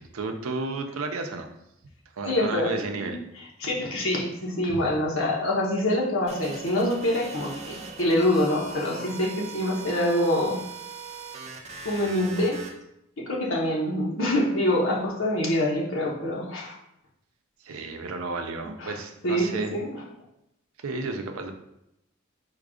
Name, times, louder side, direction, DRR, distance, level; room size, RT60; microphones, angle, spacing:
voice 1, 0.0-1.5 2.2-3.2 4.7-4.9 17.6-19.7 20.8-21.5, right 3 dB, 90° right, 5 dB, 0.6 m, -32 dB
voice 2, 2.2-3.2 3.6-10.6 11.8-12.6 13.2-16.8 18.8-18.9 19.2-19.9, left 1 dB, 75° left, -3 dB, 1.2 m, -25 dB
sound 1, 6.3-12.7, right 4 dB, 30° right, 0.5 m, -40 dB
4.5 x 2.4 x 4.9 m, 0.82 s
head